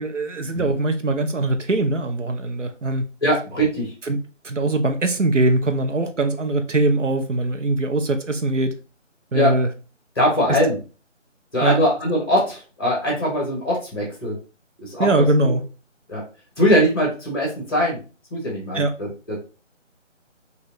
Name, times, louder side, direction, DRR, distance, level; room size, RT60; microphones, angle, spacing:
voice 1, 0.0-3.0 4.1-4.2 4.4-8.7 9.3-9.7 10.5-10.6 11.6-11.8 15.0-15.6 18.7-18.9, right 2 dB, 70° right, 0.7 m, -21 dB
voice 2, 3.2-3.9 9.3-9.6 10.1-10.8 11.5-14.4 14.8-15.5 16.1-16.2 16.6-18.0 18.3-19.4, equal, 20° left, 1.3 m, -21 dB
4.9 x 2.7 x 2.7 m
figure-of-eight pair, 160°, 38 cm